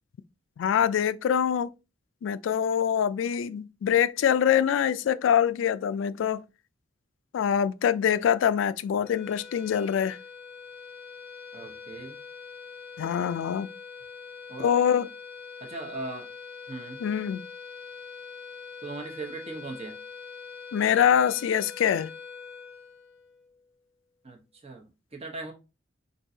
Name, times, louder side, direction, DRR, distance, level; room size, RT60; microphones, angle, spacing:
voice 1, 0.6-1.7 2.2-6.4 7.3-10.2 13.0-13.7 14.6-15.1 17.0-17.5 20.7-22.1, left 8 dB, 90° left, 0.3 m, -24 dB
sound 1, 9.0-23.6, left 5 dB, 15° left, 0.8 m, -44 dB
voice 2, 11.5-12.2 14.5-14.7 15.6-16.3 16.7-17.0 18.8-20.0 24.2-25.5, right 3 dB, 35° right, 0.9 m, -39 dB
5.3 x 2.6 x 2.6 m
head